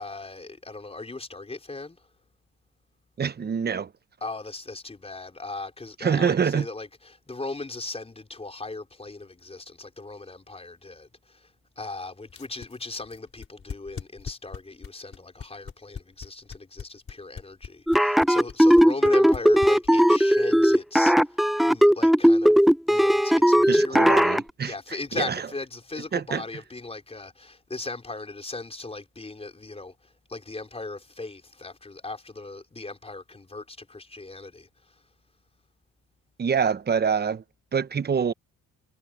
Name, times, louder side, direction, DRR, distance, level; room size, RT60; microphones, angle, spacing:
voice 1, 0.0-2.0 4.2-11.5 11.8-21.1 21.7-24.3 24.6-29.9 30.3-34.7, left 3 dB, 20° left, 4.8 m, -38 dB
voice 2, 3.2-3.9 6.0-6.7 23.7-25.5 26.1-26.4 36.4-37.4 37.7-38.3, right 6 dB, 35° right, 1.0 m, -26 dB
sound 1, 12.3-20.2, left 6 dB, 45° left, 5.1 m, -39 dB
sound 2, 17.9-24.4, equal, ahead, 0.5 m, -18 dB
cardioid pair, 90°, 30 cm